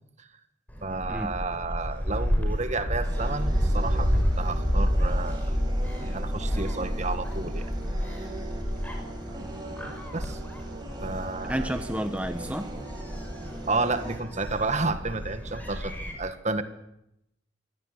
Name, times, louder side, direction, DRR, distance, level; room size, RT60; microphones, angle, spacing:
Gull seagull, 0.7-16.1, equal, 10° left, 5.8 m, -30 dB
voice 1, 0.8-5.5 6.0-7.7 9.3-10.4 11.0-11.7 13.7-16.6, right 3 dB, 40° right, 9 dB, 1.8 m, -31 dB
sound 1, 3.0-14.2, right 2 dB, 20° right, 5.8 m, -41 dB
voice 2, 11.5-12.7, right 1 dB, 5° right, 7 dB, 0.9 m, -30 dB
24.5 x 17.0 x 9.9 m, 0.84 s
head